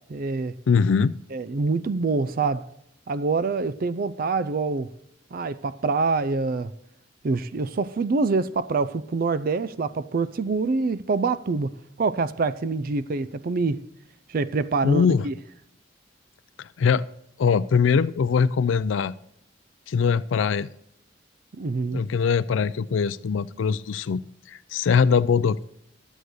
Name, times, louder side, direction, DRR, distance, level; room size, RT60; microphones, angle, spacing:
voice 1, 0.1-0.5 1.3-2.7 3.1-4.9 5.3-6.7 7.2-11.7 12.0-13.8 14.3-15.3 21.6-22.0, right 4 dB, 50° right, 0.4 m, -25 dB
voice 2, 0.7-1.1 14.8-15.3 16.6-17.1 17.4-19.1 19.9-20.7 21.9-24.2 24.5-25.6, left 6 dB, 90° left, 0.4 m, -22 dB
12.5 x 8.1 x 6.3 m
head